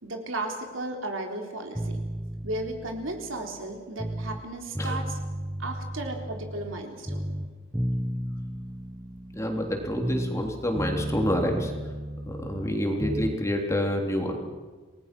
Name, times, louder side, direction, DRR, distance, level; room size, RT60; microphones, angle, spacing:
voice 1, 0.0-2.0 2.4-5.2 5.6-7.2, right 2 dB, 70° right, 3 dB, 3.8 m, -34 dB
sound 1, 1.7-4.4 4.7-6.8 7.1-10.5 10.7-13.4, equal, 10° right, 1.2 m, -33 dB
voice 2, 9.3-11.7 12.2-14.4, equal, 15° left, 2 dB, 3.4 m, -28 dB
29.5 x 19.5 x 6.2 m, 1.4 s
head